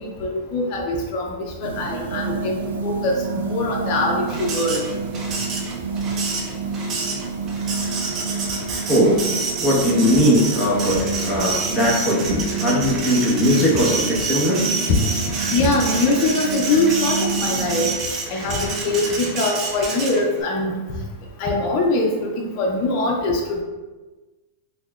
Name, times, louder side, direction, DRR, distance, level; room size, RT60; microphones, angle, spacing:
voice 1, 0.0-1.3 1.6-4.8 15.5-17.9 18.3-20.8 21.4-22.3 22.6-23.6, left 2 dB, 45° left, 0 dB, 0.5 m, -22 dB
sound 1, 1.6-18.0, right 4 dB, 90° right, 0.4 m, -29 dB
Printer, 4.3-20.4, right 4 dB, 35° right, 0.7 m, -28 dB
voice 2, 8.9-9.2 9.6-14.6, equal, 20° left, -4 dB, 1.0 m, -19 dB
5.6 x 2.1 x 2.3 m, 1.2 s
supercardioid pair, 135°, 0 cm